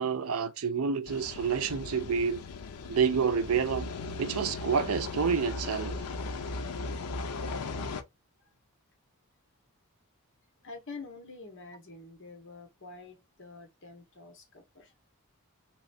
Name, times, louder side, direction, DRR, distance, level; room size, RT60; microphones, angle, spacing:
voice 1, 0.0-2.4 2.9-3.9 4.2-6.0, right 6 dB, 75° right, 0.5 m, -28 dB
sound 1, 1.1-8.0, left 3 dB, 85° left, 0.5 m, -37 dB
voice 2, 10.6-14.9, left 3 dB, 60° left, 1.2 m, -47 dB
3.1 x 3.0 x 2.5 m
head